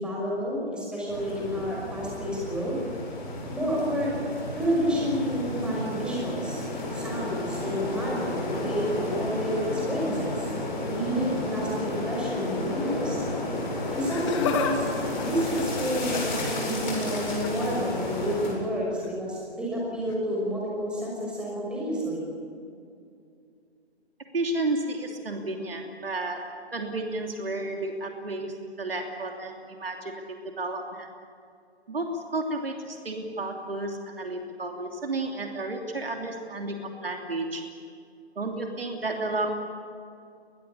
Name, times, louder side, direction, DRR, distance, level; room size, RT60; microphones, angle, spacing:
voice 1, 0.0-2.8 3.5-4.1 4.5-6.6 6.9-10.5 10.9-13.3 13.9-14.9 15.2-22.3, equal, 5° right, -4 dB, 5.8 m, -30 dB
sound 1, 1.1-18.5, left 1 dB, 40° left, 7.8 m, -32 dB
Laughter, 13.9-14.8 15.0-16.4 17.3-17.7 19.0-19.2 20.1-20.2, left 6 dB, 25° left, 2.5 m, -31 dB
voice 2, 24.3-31.1 31.9-37.8 38.3-39.5, right 2 dB, 60° right, 3 dB, 3.1 m, -32 dB
23.0 x 20.5 x 8.5 m, 2.4 s
figure-of-eight pair, 140°, 33 cm